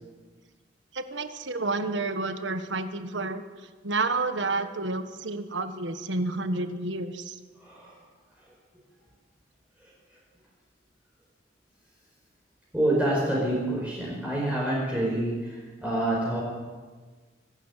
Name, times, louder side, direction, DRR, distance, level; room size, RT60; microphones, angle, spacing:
voice 1, 0.9-3.4 3.8-7.4, right 3 dB, 75° right, 9 dB, 1.5 m, -30 dB
voice 2, 7.6-7.9 12.7-16.4, right 1 dB, 5° right, -5 dB, 5.0 m, -27 dB
24.5 x 12.0 x 9.2 m, 1.4 s
head